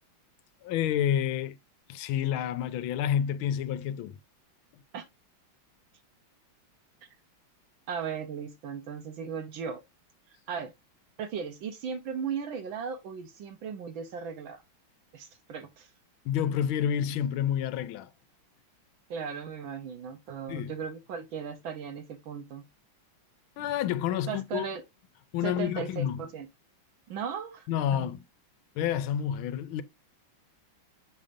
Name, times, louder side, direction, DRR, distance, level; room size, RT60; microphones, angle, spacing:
voice 1, 0.6-1.6 1.9-4.2 16.2-18.1 20.5-20.7 23.6-24.7 25.3-26.2 27.7-28.2 28.8-29.8, left 9 dB, 90° left, 1.4 m, -29 dB
voice 2, 7.9-9.8 10.5-10.7 11.2-14.6 15.1-15.9 19.1-22.6 24.3-24.8 25.4-26.5 27.1-28.1, right 6 dB, 75° right, 1.6 m, -37 dB
7.3 x 2.6 x 5.0 m
omnidirectional pair, 2.2 m